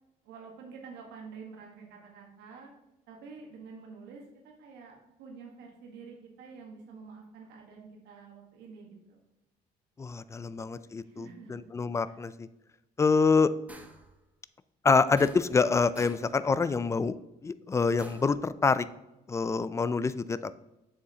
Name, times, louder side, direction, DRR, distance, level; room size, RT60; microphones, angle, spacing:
voice 1, 0.2-2.7 3.1-9.2 10.4-10.6 10.8-11.7 12.0-12.2, right 5 dB, 85° right, 0 dB, 1.4 m, -48 dB
voice 2, 10.0-12.5 13.0-13.5 14.8-17.2 17.4-18.9 19.3-20.6, left 4 dB, 15° left, 15 dB, 0.3 m, -26 dB
sound 1, 13.7-14.1 15.2-15.7 16.0-16.4 18.0-18.4, right 1 dB, 10° right, 0.7 m, -49 dB
7.3 x 6.7 x 2.8 m, 0.92 s
cardioid pair, 110°, 17 cm